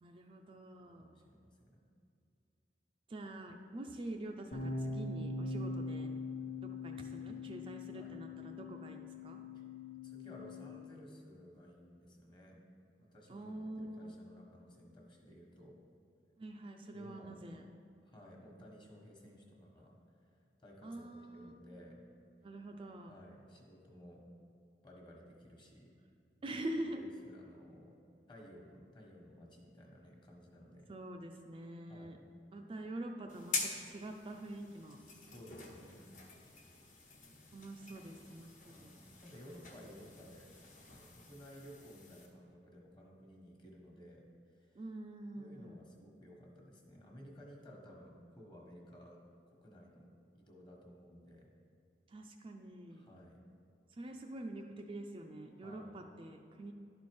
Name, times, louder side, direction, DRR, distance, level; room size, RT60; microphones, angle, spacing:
voice 1, 0.0-1.2 3.1-6.1 6.6-9.4 13.3-14.1 16.4-17.6 20.8-21.5 22.4-23.1 26.4-27.1 30.9-32.2 32.5-35.0 37.5-38.9 44.7-45.8 52.1-53.1 53.9-56.7, right 1 dB, 30° right, 3 dB, 0.4 m, -45 dB
voice 2, 0.8-1.8 7.9-8.2 9.5-9.6 10.0-12.6 13.0-15.8 16.9-17.6 18.0-20.0 20.2-20.3 20.6-21.1 21.3-22.0 23.1-24.2 24.8-25.9 26.4-26.6 26.9-27.9 28.3-30.9 31.9-32.3 35.0-36.2 38.7-40.5 40.8-44.8 45.3-49.2 49.6-50.1 50.3-51.5 52.9-53.4 55.6-56.0, equal, 25° left, -1 dB, 1.3 m, -56 dB
sound 1, 4.5-10.8, left 2 dB, 90° left, 1.2 m, -42 dB
sound 2, 33.3-42.3, left 3 dB, 45° left, 1.1 m, -46 dB
11.0 x 4.3 x 4.7 m, 2.5 s
head